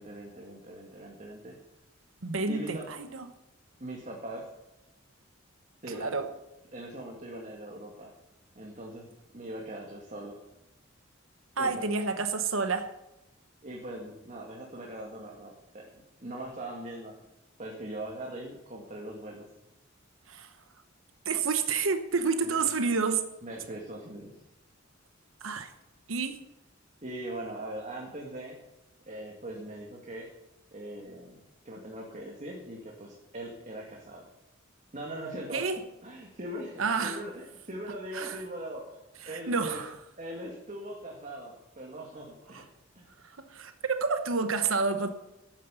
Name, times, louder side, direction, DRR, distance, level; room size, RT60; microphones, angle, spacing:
voice 1, 0.0-1.6 2.5-2.9 3.8-4.5 5.8-6.1 6.7-8.1 8.6-9.1 9.3-10.4 11.6-11.9 13.6-15.9 16.2-17.1 17.6-19.5 22.4-22.6 23.4-24.3 27.0-28.6 29.1-30.3 30.7-31.4 31.7-34.3 34.9-35.7 36.0-39.0 39.3-39.8 40.2-42.6 43.0-43.1, right 1 dB, 40° right, -1 dB, 2.1 m, -41 dB
voice 2, 2.2-3.3 5.9-6.3 11.6-12.9 20.3-20.5 21.2-23.2 25.4-25.7 26.1-26.4 35.5-35.8 36.8-37.2 38.1-38.4 39.2-39.9 43.5-45.1, right 4 dB, 75° right, 8 dB, 1.0 m, -29 dB
12.5 x 9.3 x 7.0 m, 0.96 s
head